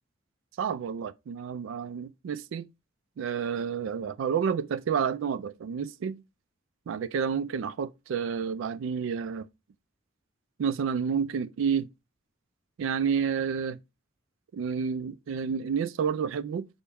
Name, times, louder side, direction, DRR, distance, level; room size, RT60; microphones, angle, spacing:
voice 1, 0.6-2.7 3.2-6.2 6.9-9.5 10.6-11.9 12.8-13.8 14.5-16.7, right 6 dB, 75° right, 0.3 m, -30 dB
5.6 x 2.0 x 3.4 m
head